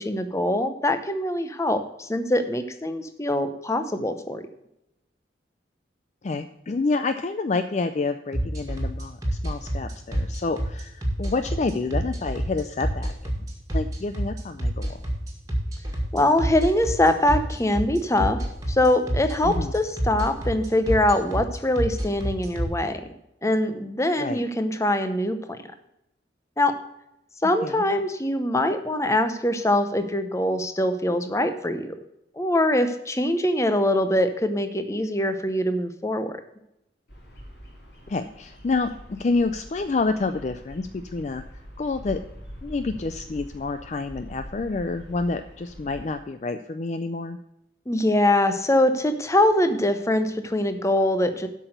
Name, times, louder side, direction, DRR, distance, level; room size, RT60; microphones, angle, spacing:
voice 1, 0.0-4.4 16.1-23.0 23.4-25.6 26.6-26.7 27.4-31.9 32.4-36.3 47.9-51.5, left 1 dB, 15° left, 9 dB, 0.7 m, -23 dB
voice 2, 6.2-13.3 13.7-15.0 19.4-19.7 24.2-24.4 27.6-27.8 38.1-41.4 41.8-42.2 42.6-47.4, left 3 dB, 40° left, 10 dB, 0.4 m, -28 dB
sound 1, 8.3-22.6, right 1 dB, 20° right, 1.9 m, -26 dB
Bird vocalization bird call bird song, 37.1-46.1, equal, 65° left, 4.5 m, -43 dB
8.1 x 6.1 x 7.8 m, 0.84 s
head